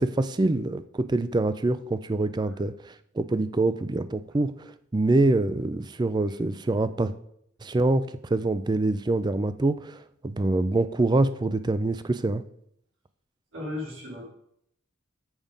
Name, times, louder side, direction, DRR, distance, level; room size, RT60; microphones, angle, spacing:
voice 1, 0.0-7.1 7.6-12.4, right 2 dB, 20° right, 13 dB, 0.3 m, -25 dB
voice 2, 13.5-14.3, left 2 dB, 75° right, -4 dB, 3.3 m, -36 dB
7.2 x 5.5 x 5.1 m, 0.71 s
head